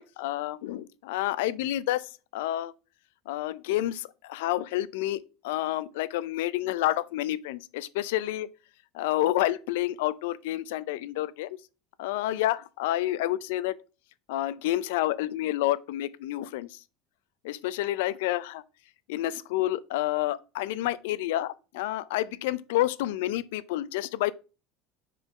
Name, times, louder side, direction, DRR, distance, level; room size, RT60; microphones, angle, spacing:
voice 1, 0.0-2.1 2.3-2.7 3.3-8.5 8.9-11.6 12.0-13.8 14.3-16.7 17.4-18.6 19.1-24.3, left 14 dB, 85° left, 0.4 m, -29 dB
5.0 x 3.8 x 5.3 m
cardioid pair, 150°, 0 cm